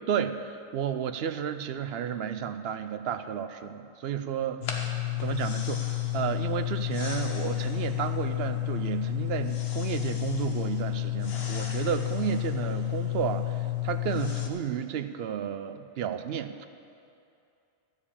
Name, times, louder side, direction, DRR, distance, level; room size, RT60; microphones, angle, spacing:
voice 1, 0.1-16.7, right 8 dB, 70° right, 10 dB, 0.8 m, -32 dB
sound 1, 4.6-14.5, left 15 dB, 70° left, 1.2 m, -31 dB
13.0 x 4.9 x 8.5 m, 2.6 s
omnidirectional pair, 1.1 m